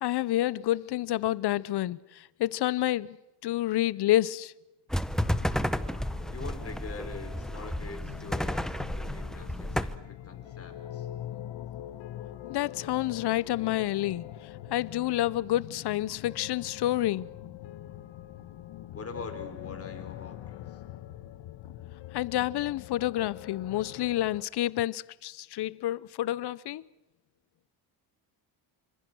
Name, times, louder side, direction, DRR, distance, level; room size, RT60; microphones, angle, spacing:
voice 1, 0.0-3.2 3.4-4.5 12.5-14.3 14.7-17.3 22.1-26.8, left 14 dB, 60° left, 0.8 m, -29 dB
sound 1, 4.9-10.0, equal, ahead, 0.8 m, -32 dB
sound 2, 5.2-24.4, left 12 dB, 75° left, 1.4 m, -44 dB
voice 2, 6.3-11.1 18.9-20.8, left 3 dB, 30° left, 4.7 m, -44 dB
27.5 x 26.0 x 6.2 m
cardioid pair, 120°, 45 cm